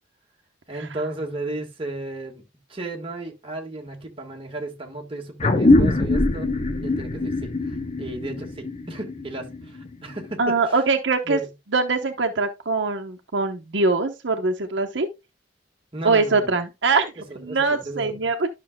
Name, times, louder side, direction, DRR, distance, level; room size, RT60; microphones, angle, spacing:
voice 1, 0.7-2.4 2.7-6.5 6.8-10.8 11.2-11.5 15.9-16.6 17.3-18.3, right 2 dB, 30° right, 1.5 m, -34 dB
sound 1, 5.4-10.3, left 2 dB, 35° left, 0.8 m, -22 dB
voice 2, 10.4-11.4 11.7-15.1 16.0-18.5, right 3 dB, 70° right, 0.9 m, -23 dB
12.0 x 6.1 x 2.2 m
head